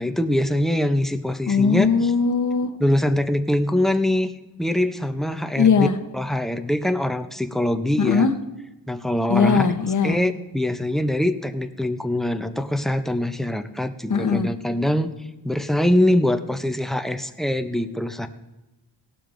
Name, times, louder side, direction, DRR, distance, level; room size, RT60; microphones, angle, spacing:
voice 1, 0.0-2.1 2.8-4.3 4.6-5.9 6.1-8.3 8.9-9.7 10.0-15.1 15.4-18.3, left 1 dB, ahead, 7 dB, 0.5 m, -23 dB
voice 2, 1.5-2.7 5.6-5.9 8.0-8.3 9.3-10.2 14.1-14.5, left 5 dB, 45° left, 8 dB, 0.9 m, -19 dB
18.5 x 12.0 x 2.5 m, 1.0 s
wide cardioid pair, 165°, 43 cm